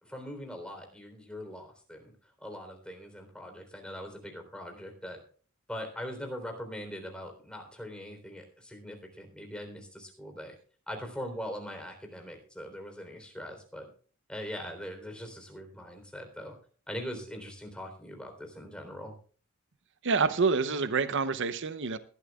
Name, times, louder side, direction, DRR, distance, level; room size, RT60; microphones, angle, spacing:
voice 1, 0.0-2.1 2.4-5.2 5.7-10.5 10.9-13.9 14.3-16.5 16.9-19.2, equal, 5° left, 3 dB, 3.6 m, -41 dB
voice 2, 20.0-22.0, right 4 dB, 60° right, 12 dB, 0.7 m, -27 dB
22.0 x 12.0 x 2.4 m, 0.43 s
head